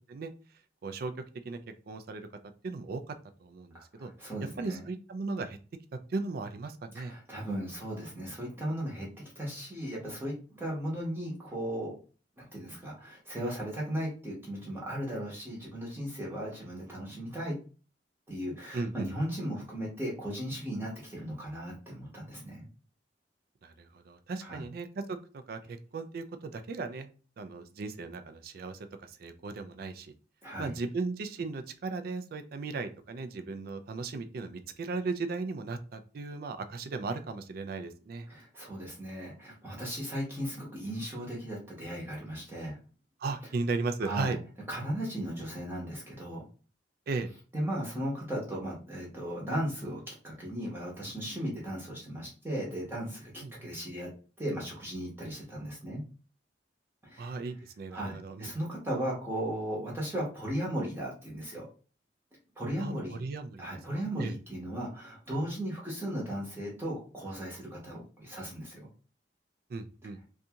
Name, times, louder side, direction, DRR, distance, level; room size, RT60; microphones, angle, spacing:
voice 1, 0.8-1.1 1.4-1.6 1.9-2.3 2.6-3.1 3.4-4.1 4.6-5.6 5.9-7.1 18.7-19.1 23.6-27.1 27.4-30.1 30.6-38.3 43.2-44.4 47.1-47.3 53.4-53.7 57.2-58.5 62.8-63.7 63.9-64.4 69.7-70.2, right 3 dB, 55° right, 9 dB, 0.4 m, -36 dB
voice 2, 3.7-4.9 6.9-11.9 12.4-17.6 18.3-22.7 24.4-24.6 30.4-30.7 38.3-42.8 44.0-44.3 44.7-46.5 47.5-54.1 54.4-56.0 57.0-57.3 57.9-61.6 62.6-63.2 63.6-68.9, equal, 15° right, -4 dB, 0.8 m, -36 dB
2.6 x 2.3 x 2.7 m, 0.37 s
head